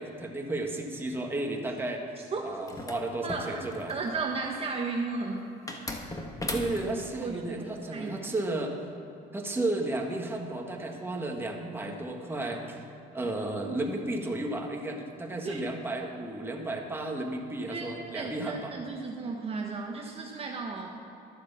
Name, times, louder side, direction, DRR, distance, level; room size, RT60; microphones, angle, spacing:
voice 1, 0.0-2.0 2.4-3.9 6.5-8.7 9.3-12.8 13.1-18.7, right 2 dB, 15° right, 1 dB, 1.6 m, -33 dB
sound 1, 2.7-4.1 5.7-7.1, left 1 dB, 20° left, 1.4 m, -37 dB
voice 2, 3.2-5.4 7.2-8.4 13.2-13.3 15.4-15.6 17.7-20.9, right 4 dB, 35° right, 0 dB, 1.2 m, -35 dB
12.0 x 8.0 x 7.0 m, 2.8 s
cardioid pair, 110°, 17 cm